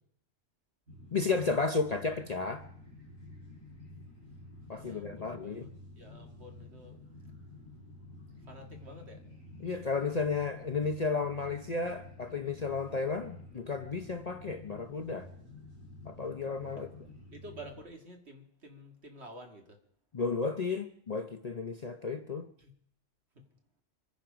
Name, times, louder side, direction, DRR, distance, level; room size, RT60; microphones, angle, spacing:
sound 1, 0.9-17.8, left 2 dB, 85° right, 6.4 m, -50 dB
voice 1, 1.1-2.6 4.7-5.7 9.6-15.3 16.1-16.9 20.1-22.5, left 4 dB, 40° left, 0.7 m, -33 dB
voice 2, 4.7-5.7 6.0-7.0 8.5-9.2 16.8-16.9 17.3-19.8 22.6-22.7 23.4-23.5, right 1 dB, 55° right, 2.2 m, -50 dB
25.0 x 10.5 x 5.1 m
omnidirectional pair, 1.4 m